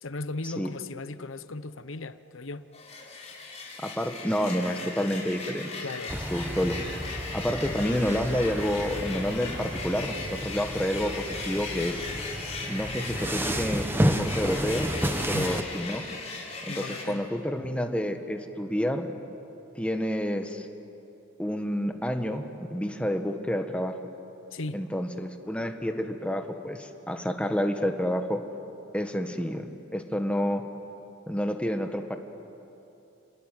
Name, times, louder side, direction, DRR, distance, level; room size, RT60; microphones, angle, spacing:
voice 1, 0.0-2.7 5.8-6.2 15.3-15.6 16.7-17.3 24.5-24.8, left 2 dB, 80° left, 0.9 m, -37 dB
sound 1, 2.7-17.0, left 4 dB, 35° left, 5.0 m, -38 dB
voice 2, 3.8-5.7 6.3-6.8 7.3-12.0 12.7-14.9 15.3-16.1 16.8-19.1 19.8-20.7 21.4-24.0 24.7-28.4 28.9-29.7 29.9-30.7 31.3-32.2, equal, 5° left, 1.6 m, -29 dB
sound 2, 6.1-15.6, equal, 10° right, 1.3 m, -32 dB
30.0 x 20.5 x 9.4 m
head